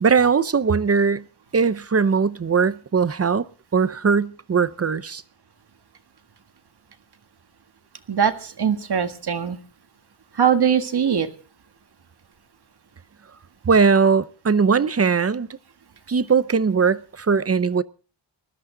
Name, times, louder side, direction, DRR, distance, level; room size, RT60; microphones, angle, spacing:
voice 1, 0.0-1.2 1.5-3.4 3.7-5.2 13.7-15.5 16.1-17.8, right 5 dB, 30° right, 0.6 m, -20 dB
voice 2, 8.1-9.6 10.3-11.3, right 8 dB, 55° right, 1.8 m, -21 dB
20.5 x 14.0 x 3.9 m
wide cardioid pair, 180°, 45 cm